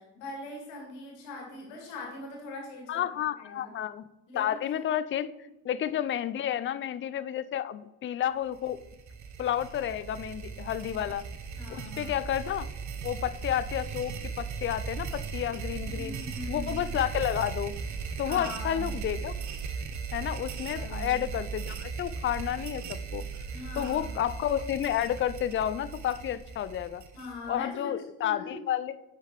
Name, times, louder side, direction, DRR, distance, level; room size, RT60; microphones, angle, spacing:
voice 1, 0.0-3.1 3.4-3.7 4.3-4.8 5.4-5.5 11.6-12.2 15.8-17.0 18.2-19.0 20.7-21.1 23.5-24.1 27.1-27.9 28.2-28.6, left 3 dB, 75° left, 0 dB, 1.8 m, -41 dB
voice 2, 2.9-4.0 4.3-5.3 5.6-8.8 9.4-11.2 11.7-12.7 13.0-16.2 16.5-17.7 18.2-19.3 20.1-23.3 23.8-27.0 27.5-29.0, left 10 dB, 30° left, 15 dB, 0.3 m, -31 dB
sound 1, 8.5-27.6, right 5 dB, 40° right, 0.8 m, -38 dB
9.4 x 3.9 x 3.0 m, 0.97 s
hypercardioid pair, 45°, 44 cm